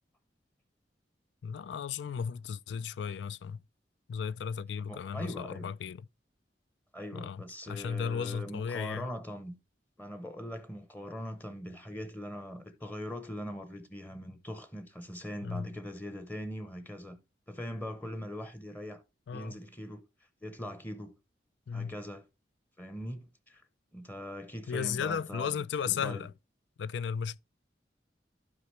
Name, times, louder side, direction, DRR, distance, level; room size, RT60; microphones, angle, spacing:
voice 1, 1.4-3.6 4.1-6.1 7.1-9.1 15.4-15.7 19.3-19.5 21.7-21.9 24.7-26.3 26.8-27.4, left 7 dB, 80° left, 0.4 m, -35 dB
voice 2, 4.9-5.7 6.9-9.6 10.0-17.2 17.5-19.0 19.3-20.0 20.4-21.2 21.7-22.2 22.8-26.2, equal, 10° left, 0.8 m, -41 dB
11.0 x 4.9 x 3.2 m
head